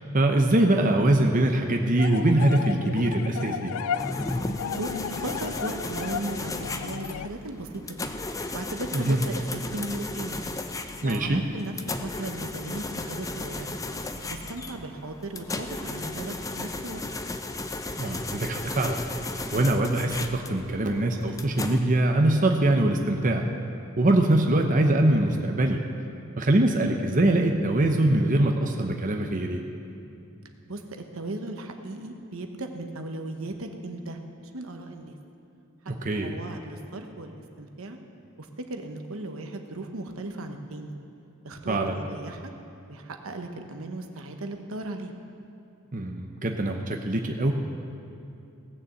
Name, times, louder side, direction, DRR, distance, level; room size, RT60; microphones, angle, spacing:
voice 1, 0.1-3.7 8.9-9.2 11.0-11.4 18.0-19.0 19.5-23.4 24.0-25.8 26.4-29.6 35.9-36.3 41.7-41.9 45.9-47.5, right 1 dB, 40° right, 3 dB, 0.8 m, -23 dB
sound 1, 2.0-7.3, left 8 dB, 80° left, 0.3 m, -34 dB
sound 2, 4.0-21.8, left 2 dB, 15° left, 0.6 m, -35 dB
voice 2, 4.7-8.0 8.5-10.4 11.0-13.8 14.2-17.0 24.5-24.6 30.7-34.2 34.5-35.2 35.8-38.0 38.4-41.0 41.4-42.5 42.9-45.1, right 2 dB, 70° right, 5 dB, 1.1 m, -36 dB
17.5 x 6.9 x 7.8 m, 2.7 s
head